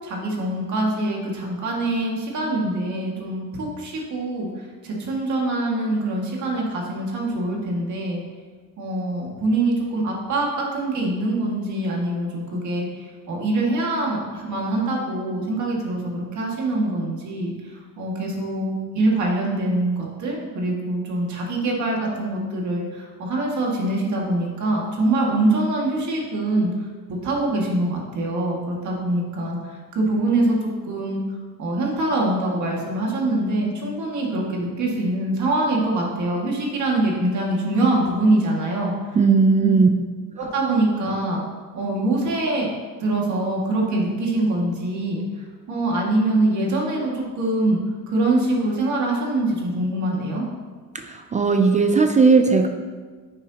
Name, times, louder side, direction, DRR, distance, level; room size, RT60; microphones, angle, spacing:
voice 1, 0.0-4.5 4.8-8.2 8.8-12.9 13.3-17.5 18.0-26.7 27.2-29.6 30.0-30.6 30.8-31.2 31.6-38.9 39.6-39.8 40.4-41.5 41.7-42.7 43.0-45.2 45.7-47.8 48.1-50.4, right 2 dB, 60° right, -2 dB, 2.0 m, -24 dB
voice 2, 39.2-39.9 51.0-52.7, right 4 dB, 20° right, 5 dB, 0.4 m, -17 dB
9.5 x 8.9 x 2.9 m, 1.5 s
cardioid pair, 170°, 34 cm